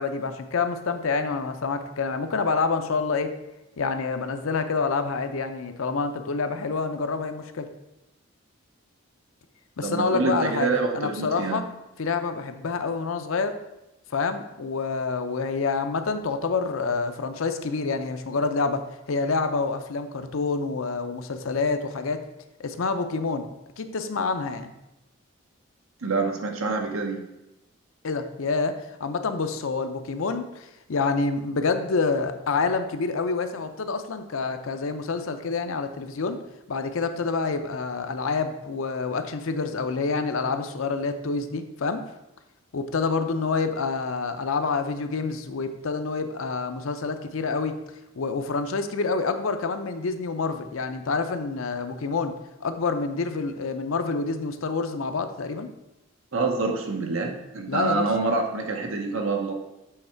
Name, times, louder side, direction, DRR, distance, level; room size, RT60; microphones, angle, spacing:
voice 1, 0.0-3.3 3.8-7.7 9.8-10.7 10.9-11.6 12.0-13.5 14.1-18.8 19.1-22.2 22.6-23.5 23.8-24.7 28.0-36.4 36.7-42.0 42.7-47.8 48.2-52.3 52.6-55.7 57.7-58.1, left 4 dB, 70° left, 8 dB, 0.6 m, -27 dB
voice 2, 9.8-11.6 26.0-27.2 56.3-59.5, right 3 dB, 75° right, 3 dB, 1.0 m, -26 dB
7.8 x 3.5 x 4.4 m, 0.93 s
head